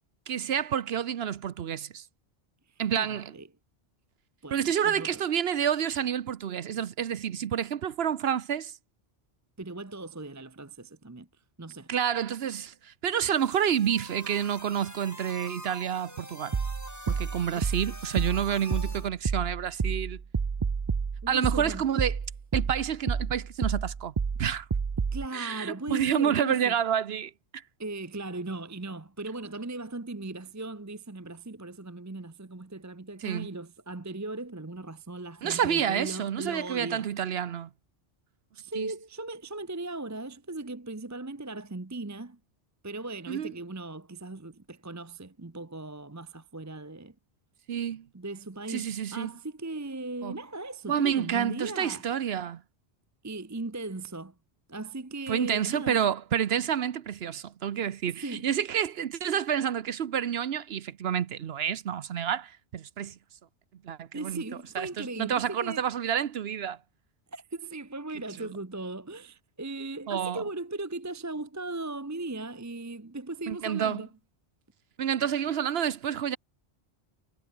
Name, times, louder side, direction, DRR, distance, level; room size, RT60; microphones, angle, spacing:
voice 1, 0.3-2.0 2.8-3.3 4.5-8.7 11.9-16.6 17.1-20.2 21.3-22.2 22.5-24.1 24.4-24.7 25.3-27.6 33.2-33.5 35.4-37.7 38.8-38.9 43.3-43.5 47.7-48.0 48.7-49.3 50.2-50.3 50.9-52.6 55.3-63.2 63.8-64.4 64.7-66.8 70.1-70.4 73.5-74.0 75.0-76.4, right 9 dB, 70° right, 1.0 m, -29 dB
voice 2, 2.9-3.5 4.4-5.2 9.6-11.3 11.6-11.9 17.5-17.7 18.0-18.1 21.2-21.8 25.1-26.8 27.8-37.1 38.5-42.4 42.8-47.1 48.1-52.1 53.2-54.3 54.7-56.1 58.1-58.5 64.1-65.9 67.3-74.1, right 2 dB, 15° right, 0.8 m, -38 dB
sound 1, 13.4-19.1, left 1 dB, 15° left, 4.6 m, -45 dB
sound 2, 16.5-25.3, right 5 dB, 35° right, 0.4 m, -30 dB
omnidirectional pair, 1.1 m